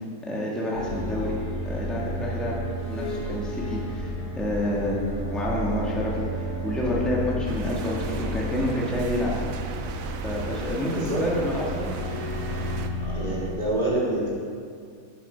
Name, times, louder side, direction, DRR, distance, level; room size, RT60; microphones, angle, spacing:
voice 1, 0.2-1.4 1.6-2.6 2.9-4.1 4.4-9.3 10.2-11.9, left 1 dB, ahead, -5 dB, 1.8 m, -28 dB
sound 1, 0.7-13.5, equal, 70° left, 3.4 m, -32 dB
sound 2, 7.5-12.9, right 5 dB, 65° right, 1.1 m, -37 dB
voice 2, 10.9-11.3 13.0-14.4, right 1 dB, 25° right, -7 dB, 3.4 m, -27 dB
11.0 x 10.0 x 5.8 m, 2.2 s
omnidirectional pair, 1.7 m